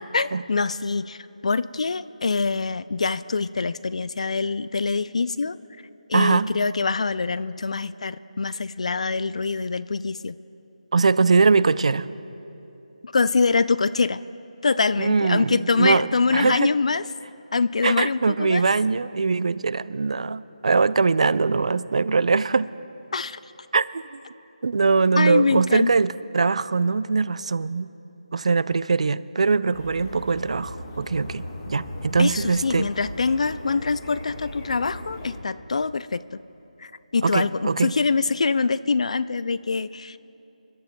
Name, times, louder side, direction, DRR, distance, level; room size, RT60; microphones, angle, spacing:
voice 1, 0.1-1.2 1.4-5.6 6.1-10.4 13.0-14.2 14.6-17.0 17.5-18.6 23.1-23.4 25.2-25.9 32.2-36.4 36.8-40.2, left 4 dB, 55° left, 16 dB, 0.4 m, -24 dB
voice 2, 6.1-6.5 10.9-12.1 15.0-16.7 17.8-22.7 23.7-24.2 24.6-27.9 28.3-32.9 37.2-37.9, right 4 dB, 55° right, 17 dB, 0.4 m, -22 dB
sound 1, 29.7-35.4, left 1 dB, 25° left, 1.5 m, -38 dB
29.5 x 11.5 x 2.3 m, 2.9 s
figure-of-eight pair, 165°, 4 cm